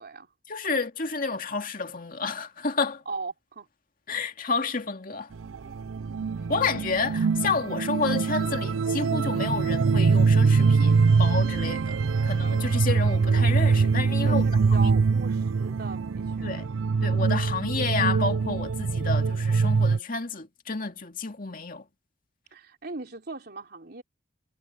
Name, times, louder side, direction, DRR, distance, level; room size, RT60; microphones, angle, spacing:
voice 1, 0.5-3.0 4.1-5.3 6.5-12.0 12.2-14.9 16.4-16.7 17.0-21.8, left 4 dB, 45° left, 2.3 m, -30 dB
voice 2, 3.0-3.7 14.2-16.7 22.5-24.0, right 3 dB, 55° right, 3.4 m, -38 dB
sound 1, 5.3-20.0, right 4 dB, 85° right, 0.5 m, -23 dB
head